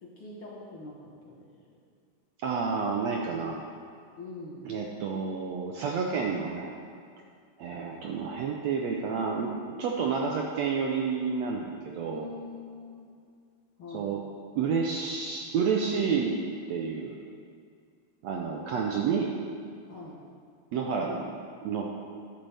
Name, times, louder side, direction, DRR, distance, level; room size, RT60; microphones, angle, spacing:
voice 1, 0.0-1.5 4.2-4.6 12.0-13.1 13.8-14.1 19.9-20.2, left 3 dB, 55° left, -4 dB, 1.6 m, -44 dB
voice 2, 2.4-3.6 4.7-6.7 7.6-9.5 9.8-12.3 13.9-14.2 14.6-16.4 16.7-17.1 18.2-19.3 20.7-21.3 21.6-21.9, right 5 dB, 75° right, 0 dB, 1.6 m, -29 dB
13.0 x 12.0 x 3.5 m, 2.2 s
omnidirectional pair, 3.8 m